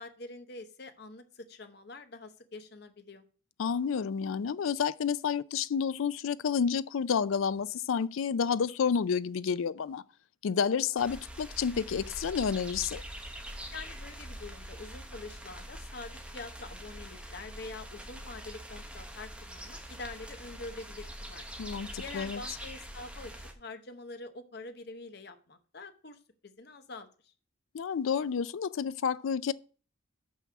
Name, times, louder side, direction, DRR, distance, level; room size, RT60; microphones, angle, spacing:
voice 1, 0.0-3.2 13.7-21.5 22.0-27.3, left 3 dB, 50° left, 0.9 m, -45 dB
voice 2, 3.6-10.0 10.4-13.0 21.6-22.4 27.7-29.5, left 6 dB, 80° left, 0.4 m, -30 dB
sound 1, 11.0-23.5, right 1 dB, 5° right, 1.0 m, -44 dB
6.1 x 5.6 x 5.8 m
head